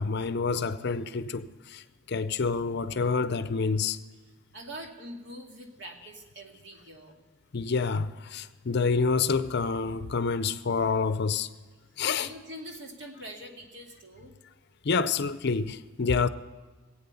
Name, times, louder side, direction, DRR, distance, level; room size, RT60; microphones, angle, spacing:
voice 1, 0.0-4.0 7.5-11.5 12.0-12.3 14.8-16.3, left 4 dB, 55° left, 0.6 m, -28 dB
voice 2, 4.5-7.2 12.2-14.3, right 1 dB, 60° right, 2.3 m, -44 dB
19.0 x 8.7 x 7.0 m
head